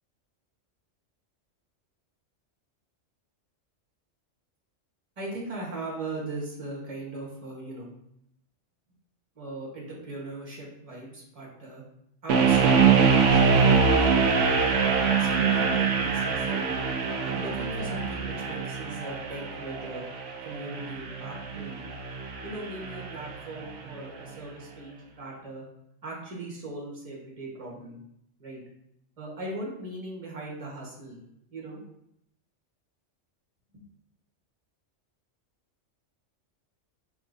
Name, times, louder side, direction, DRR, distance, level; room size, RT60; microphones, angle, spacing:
voice 1, 5.2-7.9 9.3-11.8 12.2-14.3 14.8-20.0 20.4-21.9 22.4-25.6 26.0-28.0 28.4-28.6 29.2-31.2 31.5-31.8 33.7-33.8, right 2 dB, 30° right, -4 dB, 1.2 m, -39 dB
sound 1, 12.3-23.3, right 5 dB, 75° right, 1.0 m, -24 dB
4.9 x 3.5 x 2.5 m, 0.77 s
omnidirectional pair, 1.3 m